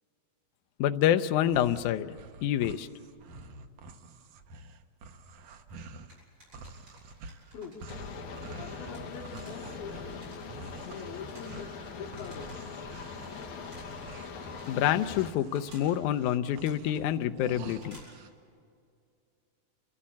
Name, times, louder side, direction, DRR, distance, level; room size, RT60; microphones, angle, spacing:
voice 1, 0.8-2.1 2.4-2.9 14.7-18.0, left 11 dB, 75° left, 9 dB, 2.0 m, -27 dB
sound 1, 1.1-6.2 6.5-18.3, right 3 dB, 65° right, 1.7 m, -49 dB
sound 2, 6.1-18.2, right 1 dB, 35° right, 8.5 m, -57 dB
sound 3, 7.9-15.3, left 5 dB, 60° left, 2.7 m, -42 dB
voice 2, 8.6-10.1 10.8-12.5, left 6 dB, 90° left, 1 dB, 3.1 m, -43 dB
29.5 x 14.0 x 8.5 m, 2.3 s
omnidirectional pair, 4.1 m